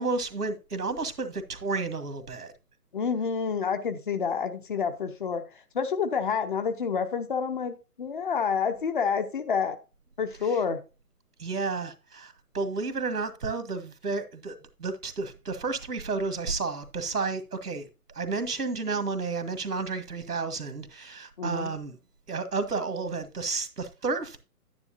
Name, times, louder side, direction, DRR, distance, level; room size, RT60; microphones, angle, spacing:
voice 1, 0.0-2.5 11.4-17.9 18.1-22.0 22.3-24.4, right 4 dB, 80° right, 1.6 m, -31 dB
voice 2, 2.9-5.4 5.7-9.8 10.2-10.8 21.4-21.7, left 6 dB, 35° left, 0.9 m, -28 dB
9.8 x 9.6 x 2.7 m
figure-of-eight pair, 140°, 46 cm